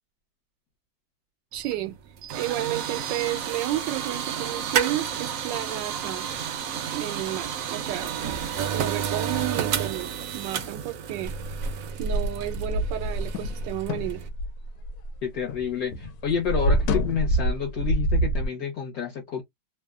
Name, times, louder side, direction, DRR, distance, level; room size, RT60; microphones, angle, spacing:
sound 1, 1.5-14.3, right 8 dB, 70° right, 0.8 m, -31 dB
voice 1, 1.5-2.0 2.3-6.3 6.9-8.1 8.7-11.3 12.0-14.2, right 14 dB, 90° right, 1.2 m, -32 dB
sound 2, 11.2-15.7 15.9-18.5, right 1 dB, 85° left, 1.2 m, -26 dB
voice 2, 15.2-19.4, left 7 dB, 65° left, 1.1 m, -29 dB
3.0 x 2.0 x 2.3 m
omnidirectional pair, 1.9 m